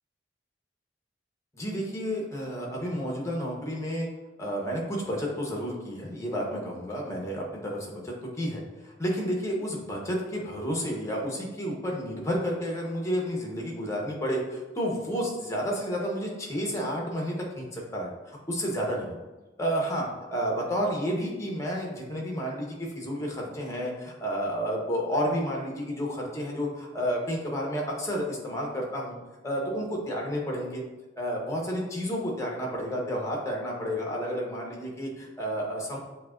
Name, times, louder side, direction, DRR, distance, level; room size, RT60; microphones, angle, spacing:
voice 1, 1.5-4.1 4.4-19.2 19.6-29.2 29.4-30.8 31.2-36.0, equal, 15° left, -1 dB, 0.9 m, -31 dB
7.4 x 2.8 x 2.5 m, 1.1 s
head